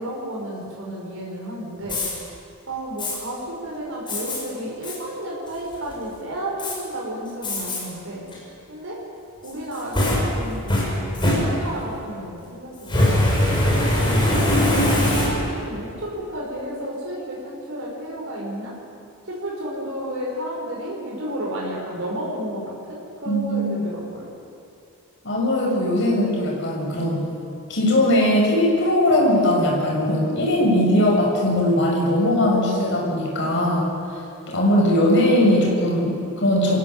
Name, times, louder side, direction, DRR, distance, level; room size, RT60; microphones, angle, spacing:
voice 1, 0.0-2.0 2.7-8.3 8.7-9.0 9.4-13.2 14.0-18.8 19.2-24.3, equal, 60° right, -4 dB, 5.6 m, -32 dB
Fire, 1.8-2.1 3.0-3.2 4.1-4.4 4.8-5.0 5.5-5.9 6.6-6.7 7.4-7.8 8.3-8.4 9.4-11.9 12.8-15.7, left 1 dB, 20° left, 6.5 m, -21 dB
voice 2, 23.3-23.7 25.2-27.3 27.7-33.9 34.5-36.8, left 1 dB, 55° left, -2 dB, 6.5 m, -20 dB
28.0 x 16.0 x 8.0 m, 2.6 s
head